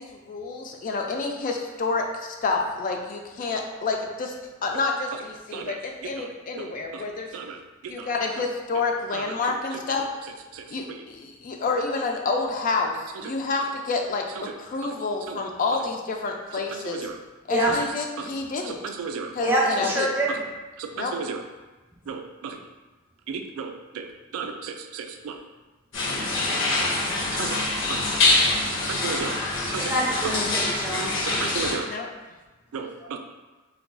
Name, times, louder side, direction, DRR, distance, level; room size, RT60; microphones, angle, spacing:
voice 1, 0.0-4.4 4.6-7.3 7.9-10.0 10.7-17.1 17.5-18.8 19.3-20.1 20.9-21.1 31.8-32.1, left 3 dB, 40° left, 2 dB, 0.3 m, -29 dB
voice 2, 6.6-7.1 7.3-7.6 8.0-8.1 9.1-9.2 10.5-11.0 15.3-15.4 16.9-17.2 18.7-19.3 20.8-21.4 22.1-22.6 23.3-24.1 24.3-25.4 27.3-28.0 28.9-29.4 29.7-29.9 31.2-31.9 32.7-33.2, right 5 dB, 85° right, 5 dB, 0.3 m, -34 dB
voice 3, 19.4-20.4 29.8-31.2 32.8-33.1, right 1 dB, 10° right, -5 dB, 0.5 m, -25 dB
sound 1, 25.9-31.8, left 2 dB, 65° left, 0.7 m, -25 dB
2.3 x 2.2 x 3.6 m, 1.2 s
head